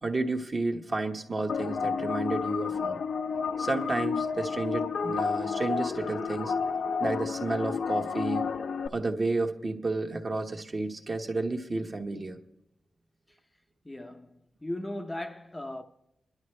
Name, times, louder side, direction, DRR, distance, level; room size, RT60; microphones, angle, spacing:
voice 1, 0.0-3.0 3.6-6.5 7.0-8.5 8.9-12.4, right 3 dB, 35° right, 1.3 m, -31 dB
sound 1, 1.5-8.9, left 5 dB, 85° left, 0.6 m, -31 dB
voice 2, 13.8-15.8, left 1 dB, 15° left, 0.6 m, -37 dB
26.0 x 11.0 x 3.2 m
wide cardioid pair, 115°, 0 cm